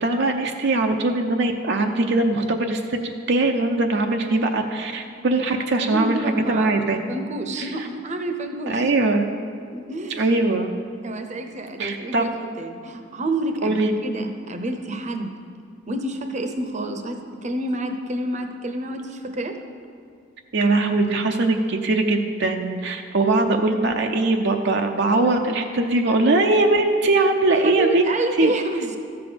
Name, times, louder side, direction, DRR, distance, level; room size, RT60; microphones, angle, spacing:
voice 1, 0.0-3.0 3.3-6.2 6.5-7.0 7.6-7.7 8.7-9.3 10.2-10.7 11.8-12.2 13.6-13.9 20.5-28.5, right 2 dB, 65° right, 3 dB, 0.6 m, -21 dB
voice 2, 5.8-8.9 9.7-10.3 11.0-15.3 15.9-19.6 27.5-29.0, right 2 dB, 40° right, 6 dB, 0.8 m, -29 dB
13.5 x 6.9 x 5.1 m, 2.3 s
head